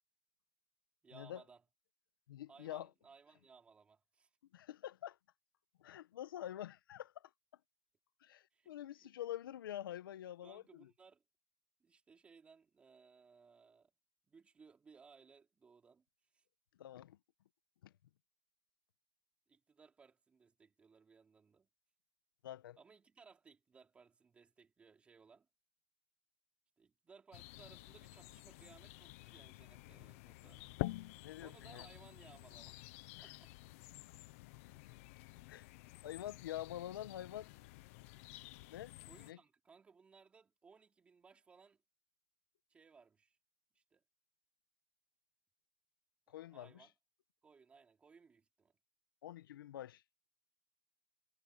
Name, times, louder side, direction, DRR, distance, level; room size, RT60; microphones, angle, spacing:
voice 1, 1.0-1.6 2.5-4.3 8.5-9.1 10.4-11.2 11.8-13.9 14.3-16.0 16.3-16.4 19.5-21.7 22.8-25.5 26.8-32.8 33.2-33.5 39.0-41.8 42.7-43.4 43.7-44.0 46.3-46.9 47.4-48.8, right 5 dB, 10° right, 4.4 m, -63 dB
voice 2, 2.3-2.9 4.5-5.2 5.8-7.3 8.2-10.9 16.8-17.2 17.8-17.9 22.4-22.8 31.2-31.9 33.2-33.3 35.5-35.7 36.0-37.5 38.7-38.9 39.2-39.4 46.3-46.9 49.2-50.0, left 12 dB, 90° left, 1.3 m, -46 dB
sound 1, 27.3-39.3, left 20 dB, 40° left, 1.0 m, -49 dB
supercardioid pair, 175°, 11 cm